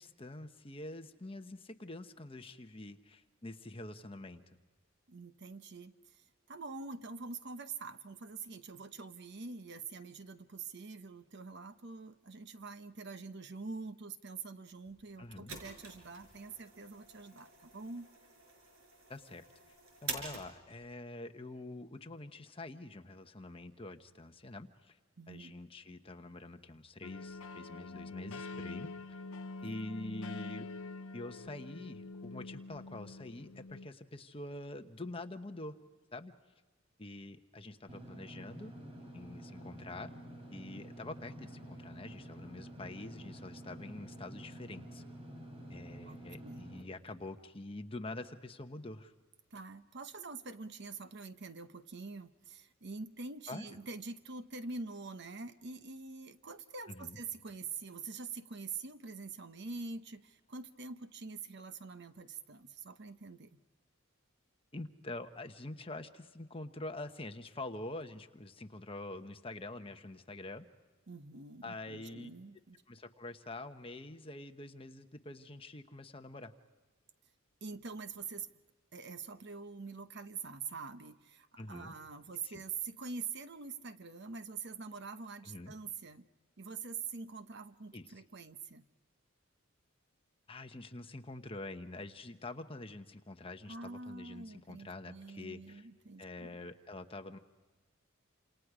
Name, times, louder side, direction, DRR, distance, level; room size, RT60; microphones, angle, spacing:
voice 1, 0.0-4.4 15.2-15.6 19.1-19.4 20.0-25.0 25.3-29.2 29.6-30.7 31.1-35.8 36.1-36.3 37.0-38.7 39.1-40.1 40.5-45.0 45.7-49.1 53.5-53.7 56.9-57.2 64.7-70.6 71.6-72.3 72.9-76.5 81.6-81.9 82.4-82.6 85.4-85.7 87.9-88.1 90.5-95.9 96.2-97.4, left 2 dB, 25° left, 7 dB, 1.1 m, -46 dB
voice 2, 5.1-18.1 25.2-25.6 29.6-29.8 46.0-46.7 49.5-63.6 71.1-72.8 77.6-78.5 78.9-86.2 86.6-88.8 93.7-96.7, right 4 dB, 55° right, 10 dB, 1.0 m, -45 dB
sound 1, 14.8-20.9, right 3 dB, 90° right, 5.3 m, -47 dB
sound 2, 27.0-33.9, left 3 dB, 85° left, 0.7 m, -45 dB
Engine / Mechanisms, 37.9-46.8, equal, 30° right, 3.3 m, -49 dB
29.0 x 27.0 x 5.0 m, 1.3 s
head